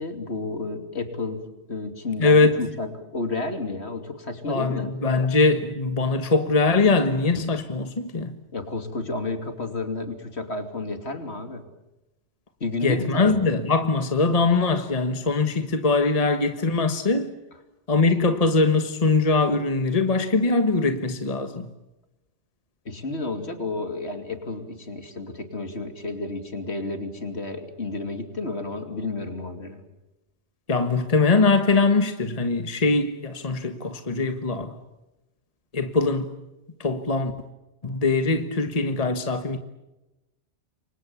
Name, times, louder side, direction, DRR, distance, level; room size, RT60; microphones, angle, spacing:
voice 1, 0.0-4.9 8.5-11.6 12.6-13.4 22.8-29.8, left 3 dB, 65° left, 3.1 m, -31 dB
voice 2, 2.2-2.6 4.5-8.3 12.8-17.3 17.9-21.7 30.7-34.8 35.7-36.3 36.8-37.3 37.8-39.6, left 3 dB, 30° left, 1.5 m, -22 dB
28.5 x 24.5 x 7.2 m
omnidirectional pair, 1.2 m